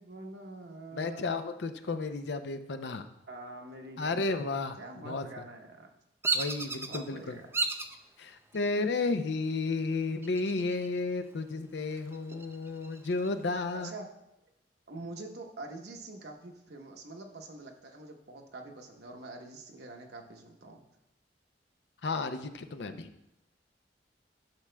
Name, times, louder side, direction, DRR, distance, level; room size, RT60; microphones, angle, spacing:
voice 1, 0.0-1.2 3.3-5.9 6.8-7.5 13.7-14.1 14.9-20.8, right 2 dB, 70° right, 3 dB, 1.0 m, -45 dB
voice 2, 0.9-3.1 4.0-4.8 5.0-5.3 6.3-7.4 8.2-13.9 22.0-23.1, left 3 dB, 70° left, 9 dB, 0.5 m, -32 dB
Bird vocalization bird call bird song, 6.2-7.0 7.5-8.0 8.5-9.0 10.2-11.0 11.3-11.4 11.9-13.3, right 3 dB, 15° right, 0.4 m, -33 dB
11.5 x 6.1 x 2.2 m, 0.88 s
head